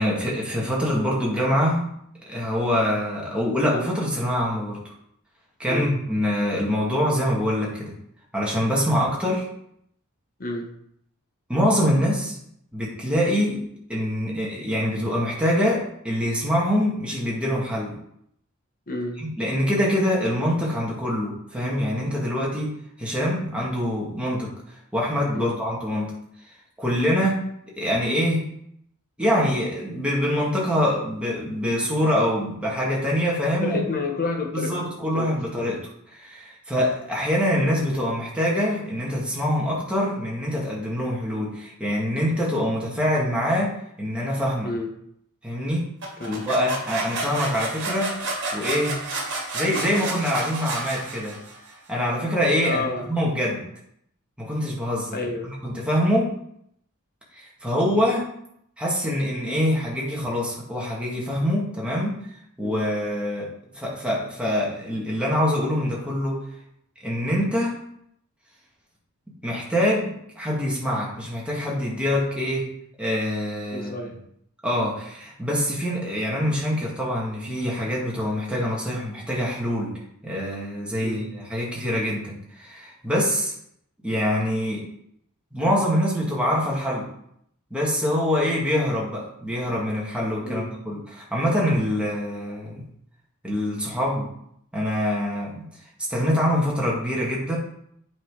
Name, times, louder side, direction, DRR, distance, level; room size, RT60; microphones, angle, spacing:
voice 1, 0.0-1.9 2.3-4.9 5.6-7.9 8.3-9.5 11.5-12.4 12.7-13.6 13.9-18.0 19.2-22.7 23.0-26.1 26.8-27.4 27.8-28.5 29.2-33.8 34.5-35.8 36.1-44.7 45.4-45.9 46.3-48.2 48.5-49.0 49.5-51.4 51.9-53.6 54.4-55.2 55.6-56.3 57.3-58.2 58.8-62.2 62.6-63.5 63.8-66.4 67.0-67.8 69.4-72.7 73.0-73.9 74.6-79.9 80.2-83.5 84.0-84.8 85.5-87.0 87.7-92.9 93.4-94.3 94.7-95.6 96.1-97.6, equal, 5° right, -4 dB, 2.1 m, -24 dB
voice 2, 10.4-10.7 18.9-19.2 25.3-25.6 33.6-35.3 35.5-35.7 44.6-44.9 46.2-46.5 52.6-53.2 55.1-55.5 62.6-62.8 73.7-74.2 81.0-81.3 90.4-90.7, left 2 dB, 40° left, 1 dB, 1.3 m, -30 dB
sound 1, 46.0-51.7, right 2 dB, 55° right, 2.1 m, -31 dB
8.7 x 4.4 x 4.9 m, 0.72 s
head